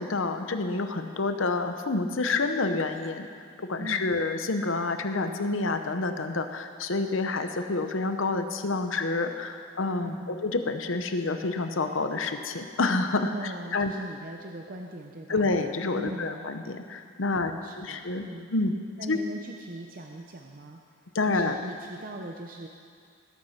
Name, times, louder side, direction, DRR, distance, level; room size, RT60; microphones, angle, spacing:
voice 1, 0.0-3.3 3.6-13.9 15.3-17.5 17.8-18.2 18.5-18.7 19.1-19.2 21.1-21.6, left 3 dB, 65° left, 7 dB, 0.9 m, -28 dB
voice 2, 3.8-4.1 10.0-10.4 13.3-15.5 16.0-16.5 17.3-18.5 19.0-20.8 21.3-22.7, right 1 dB, 40° right, 2 dB, 0.7 m, -40 dB
18.5 x 8.2 x 5.8 m, 2.2 s
head